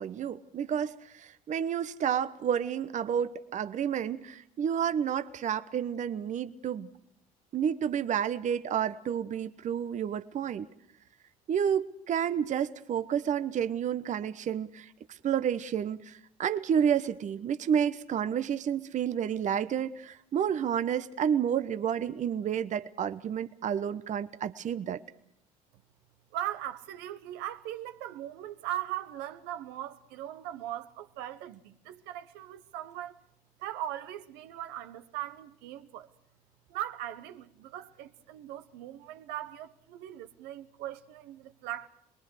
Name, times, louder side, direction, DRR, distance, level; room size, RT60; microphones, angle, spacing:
voice 1, 0.0-6.9 7.5-10.7 11.5-25.0, right 8 dB, 40° right, 1.0 m, -30 dB
voice 2, 26.3-33.2 33.6-36.1 36.7-41.9, right 12 dB, 65° right, 1.2 m, -39 dB
25.5 x 21.5 x 6.5 m
hypercardioid pair, 65°, 18 cm